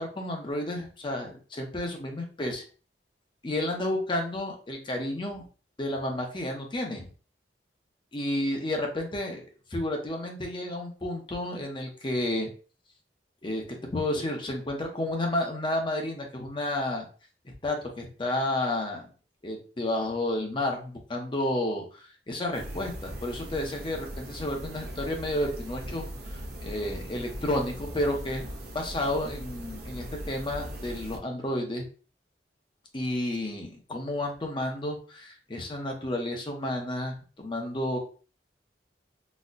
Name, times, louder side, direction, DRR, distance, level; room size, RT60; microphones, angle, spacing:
voice 1, 0.0-2.6 3.4-5.4 5.8-7.1 8.1-9.4 9.7-12.5 13.4-17.0 17.6-19.1 19.4-28.4 28.7-31.8 32.9-38.0, left 1 dB, 30° left, 2 dB, 0.7 m, -31 dB
sound 1, 22.5-31.2, equal, 60° right, 0.7 m, -40 dB
4.0 x 2.1 x 2.4 m, 0.37 s
head